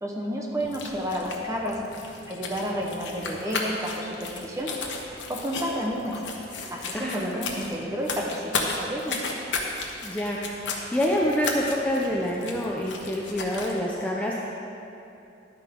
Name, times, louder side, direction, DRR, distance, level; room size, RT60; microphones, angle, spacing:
voice 1, 0.0-1.8 2.3-4.7 5.3-6.2 6.7-9.2, equal, 15° right, -1 dB, 1.2 m, -31 dB
sound 1, 0.6-13.8, left 3 dB, 75° left, 1.2 m, -35 dB
voice 2, 6.9-7.4 10.0-14.4, equal, 5° left, -3 dB, 0.7 m, -27 dB
12.0 x 9.5 x 3.9 m, 2.8 s
head